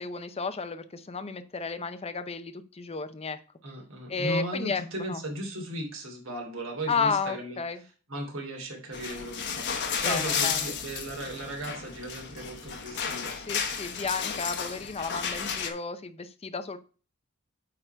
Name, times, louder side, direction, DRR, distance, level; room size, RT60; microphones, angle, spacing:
voice 1, 0.0-3.4 4.1-5.2 6.9-7.8 10.0-10.6 13.5-16.8, left 4 dB, 30° left, 11 dB, 0.6 m, -32 dB
voice 2, 3.6-7.6 8.1-13.3, right 1 dB, 65° right, 0 dB, 2.8 m, -36 dB
sound 1, 8.9-15.7, left 6 dB, 55° left, 1.1 m, -33 dB
8.9 x 3.8 x 4.4 m, 0.37 s
head